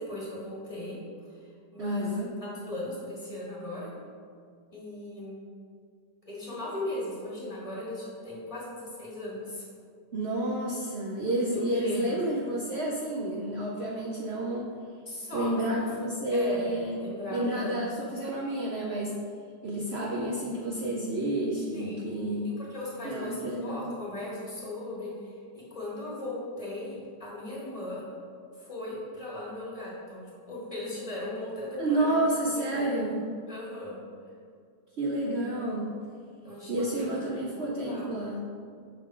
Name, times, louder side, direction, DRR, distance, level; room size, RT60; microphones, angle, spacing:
voice 1, 0.0-3.9 4.7-5.4 6.3-9.6 11.5-12.2 15.1-15.5 15.8-16.0 16.3-16.7 17.0-17.8 21.7-22.1 22.4-28.0 28.5-32.1 32.6-32.9 33.5-34.0 36.4-38.1, left 1 dB, 20° left, -7 dB, 1.6 m, -38 dB
voice 2, 1.8-2.3 10.1-14.7 15.3-17.0 17.3-19.1 19.6-22.5 23.0-23.9 31.8-33.3 35.0-35.9 36.7-38.4, right 1 dB, 80° right, -3 dB, 0.5 m, -30 dB
6.8 x 3.7 x 4.7 m, 2.2 s
omnidirectional pair, 1.9 m